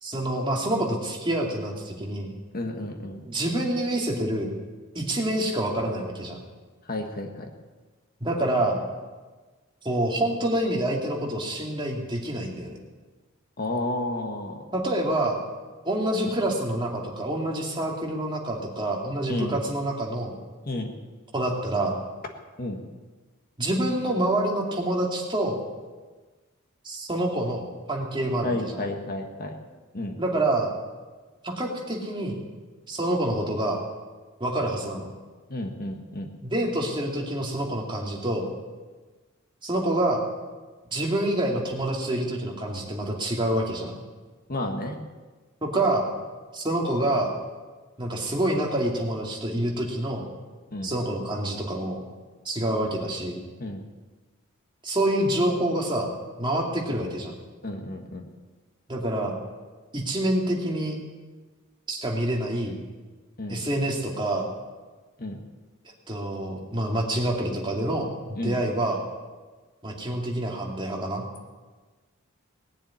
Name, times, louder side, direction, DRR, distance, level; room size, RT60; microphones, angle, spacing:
voice 1, 0.0-2.3 3.2-4.5 4.9-6.4 8.2-8.8 9.8-12.8 14.7-15.4 15.8-20.3 21.3-22.0 23.6-25.6 26.8-28.8 30.2-30.7 31.4-32.4 32.9-33.8 34.4-35.1 36.4-38.5 39.6-40.3 40.9-44.0 45.6-46.1 46.5-47.3 48.0-50.2 50.8-52.0 52.4-53.4 54.8-56.1 56.4-57.3 58.9-59.4 59.9-61.0 61.9-62.8 63.5-64.5 66.1-69.0 69.8-71.2, right 1 dB, 25° right, -1 dB, 2.5 m, -27 dB
voice 2, 2.5-3.2 6.8-7.5 13.6-14.6 19.3-19.6 20.6-20.9 22.6-22.8 28.4-29.5 29.9-30.2 35.5-36.3 44.5-45.0 50.7-50.9 53.6-53.8 57.6-58.3 63.4-63.6 65.2-65.4 68.4-68.6, left 1 dB, 45° left, 3 dB, 1.6 m, -31 dB
19.0 x 7.2 x 9.7 m, 1.3 s
head